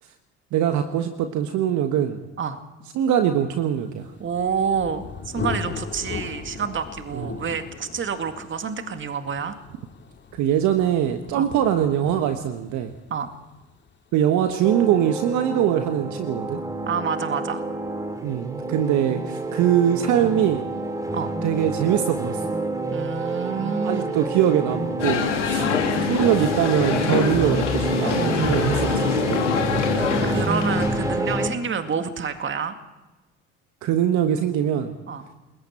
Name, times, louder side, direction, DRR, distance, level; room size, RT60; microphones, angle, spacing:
voice 1, 0.5-2.2 2.9-4.1 7.1-7.3 10.3-12.9 14.1-16.6 18.2-20.6 21.4-22.4 23.8-25.7 26.0-29.7 33.8-34.9, right 10 dB, 55° right, 7 dB, 1.5 m, -22 dB
Thunder, 4.0-15.6, left 5 dB, 30° left, 2.5 m, -38 dB
voice 2, 4.2-9.6 11.3-11.5 13.1-13.3 16.9-17.6 21.1-21.3 22.9-24.2 25.6-25.8 30.2-32.8 35.1-35.3, right 6 dB, 35° right, 8 dB, 2.1 m, -28 dB
sound 1, 14.6-31.5, right 2 dB, 10° right, 2.8 m, -28 dB
sound 2, 25.0-31.2, left 6 dB, 85° left, 2.7 m, -25 dB
28.5 x 21.0 x 4.5 m, 1.1 s
hypercardioid pair, 65°, 35 cm